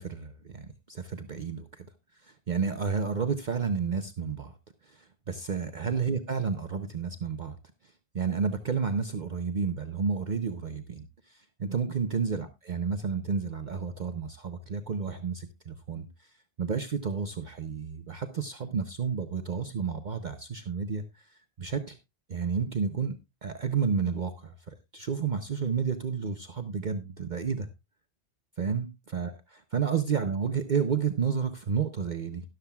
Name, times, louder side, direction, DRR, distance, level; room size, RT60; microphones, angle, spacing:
voice 1, 0.0-1.9 2.1-4.6 4.8-7.6 7.8-16.3 16.6-22.0 22.3-27.7 28.6-32.4, right 6 dB, 45° right, 0.9 m, -31 dB
12.5 x 12.0 x 2.3 m
omnidirectional pair, 1.1 m